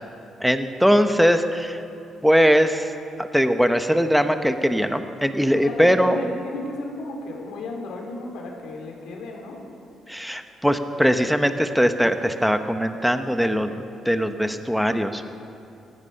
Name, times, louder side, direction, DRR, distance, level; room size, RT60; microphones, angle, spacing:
voice 1, 0.4-1.8 2.2-2.9 3.2-6.2 10.1-15.2, equal, ahead, 8 dB, 1.0 m, -21 dB
voice 2, 5.5-9.6, left 2 dB, 85° left, 1 dB, 3.3 m, -33 dB
17.5 x 14.0 x 5.7 m, 2.6 s
cardioid pair, 90°, 0 cm